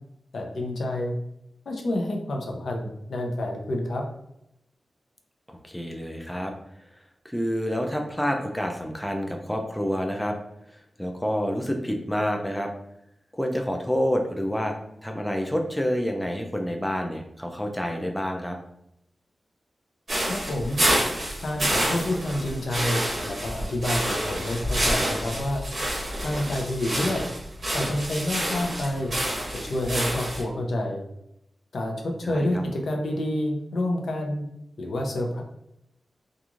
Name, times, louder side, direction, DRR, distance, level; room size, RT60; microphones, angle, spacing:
voice 1, 0.3-1.1 1.7-4.0 20.3-20.8 21.4-25.6 26.2-27.3 27.7-29.1 29.5-31.0 31.7-34.4 34.8-35.4, left 1 dB, 70° left, 2 dB, 0.5 m, -28 dB
voice 2, 5.5-6.5 7.2-10.4 10.7-12.7 13.3-14.8 15.0-18.6 32.2-32.5, equal, 5° left, 2 dB, 0.3 m, -28 dB
sound 1, 20.1-30.4, right 1 dB, 45° right, 1.0 m, -28 dB
2.9 x 2.4 x 2.4 m, 0.78 s
wide cardioid pair, 135°, 0 cm